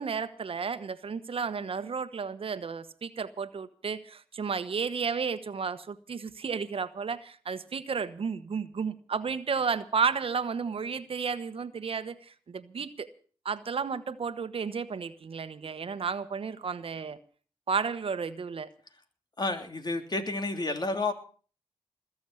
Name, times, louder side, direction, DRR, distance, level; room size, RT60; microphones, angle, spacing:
voice 1, 0.0-13.1 13.4-17.2 17.7-18.7, right 5 dB, 70° right, 13 dB, 1.2 m, -32 dB
voice 2, 19.4-21.1, left 2 dB, 45° left, 6 dB, 3.1 m, -30 dB
21.0 x 7.2 x 8.5 m, 0.43 s
cardioid pair, 45°, 10 cm